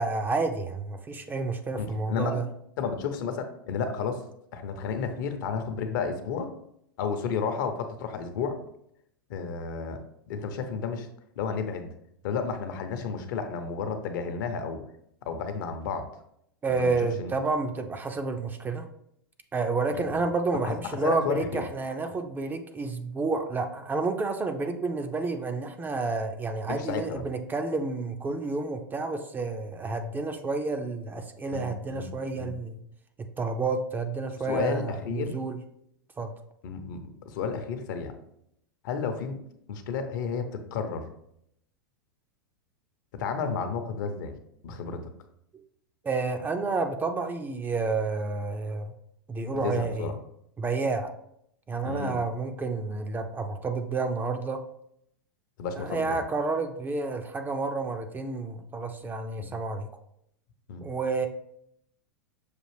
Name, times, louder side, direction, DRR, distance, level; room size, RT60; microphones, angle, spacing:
voice 1, 0.0-2.5 16.6-18.9 19.5-32.8 33.4-35.6 36.2-36.3 46.0-48.9 49.3-50.1 50.6-51.1 51.7-54.6 55.8-59.9 60.8-61.3, right 3 dB, 15° right, 6 dB, 0.4 m, -30 dB
voice 2, 1.8-2.4 2.8-4.2 4.5-6.5 7.0-8.6 9.3-11.1 11.4-11.9 12.2-14.8 15.2-16.1 16.8-16.9 17.2-17.3 19.9-20.0 20.6-20.7 21.0-21.6 26.7-27.2 31.5-32.1 32.3-32.5 34.5-35.4 36.6-38.1 38.8-39.4 39.7-41.1 43.1-44.3 44.6-45.1 49.6-50.1 51.8-52.2 55.6-56.2 59.4-59.5 60.7-60.9, left 5 dB, 60° left, 8 dB, 0.7 m, -32 dB
6.5 x 2.5 x 3.3 m, 0.74 s
hypercardioid pair, 105°, 12 cm